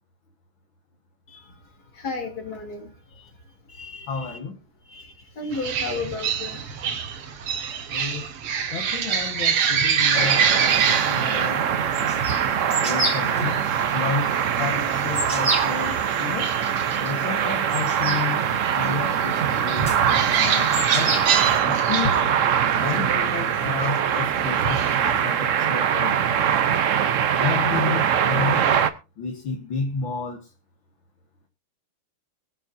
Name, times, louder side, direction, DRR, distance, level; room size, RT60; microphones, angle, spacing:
voice 1, 2.0-2.9 3.2-3.3 3.7-4.4 4.9-6.6, left 3 dB, 45° left, 2 dB, 3.5 m, -33 dB
voice 2, 4.1-4.6 7.9-8.2 8.7-11.7 12.8-16.6 17.0-18.4 18.7-21.2 21.7-22.3 22.7-26.4 27.4-28.7 29.2-30.5, left 5 dB, 65° left, 2 dB, 2.3 m, -31 dB
sound 1, 5.5-25.2, right 7 dB, 90° right, 2.3 m, -27 dB
sound 2, 10.1-28.9, right 8 dB, 70° right, 0.7 m, -23 dB
sound 3, 10.7-21.6, right 2 dB, 40° right, 4.4 m, -33 dB
23.5 x 8.2 x 2.7 m, 0.30 s
omnidirectional pair, 2.4 m